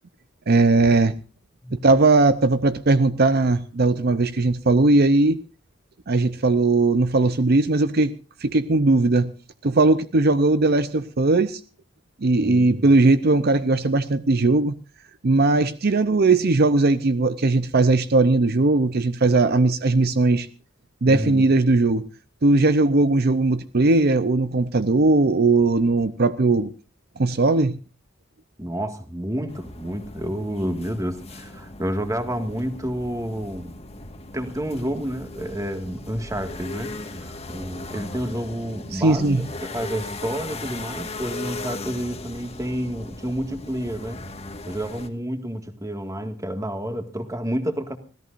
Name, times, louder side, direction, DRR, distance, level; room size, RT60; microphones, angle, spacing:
voice 1, 0.5-1.1 1.7-5.4 6.1-8.1 8.4-9.3 9.6-11.6 12.2-14.7 15.2-20.5 21.0-22.1 22.4-26.7 27.2-27.8 38.9-39.5, right 3 dB, 55° right, 0.7 m, -19 dB
voice 2, 12.4-12.8 21.1-21.5 28.6-33.8 34.3-44.2 44.7-48.0, equal, 15° right, 1.9 m, -30 dB
sound 1, 29.5-45.1, left 2 dB, 35° left, 1.7 m, -38 dB
25.0 x 17.0 x 2.6 m
head